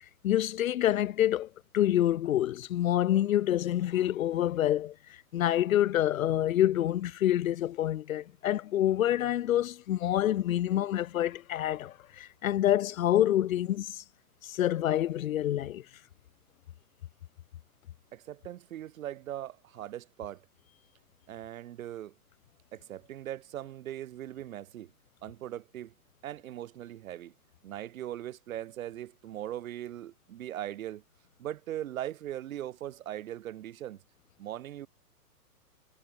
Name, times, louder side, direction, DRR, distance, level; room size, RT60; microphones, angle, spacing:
voice 1, 0.2-1.5 1.7-4.9 5.3-14.0 14.4-15.8, left 12 dB, 55° left, 1.4 m, -27 dB
voice 2, 18.1-20.4 21.3-22.1 22.7-24.9 25.2-25.9 26.2-27.3 27.6-31.0 31.4-34.0 34.4-34.9, right 12 dB, 55° right, 1.3 m, -40 dB
hypercardioid pair, 135°, 48 cm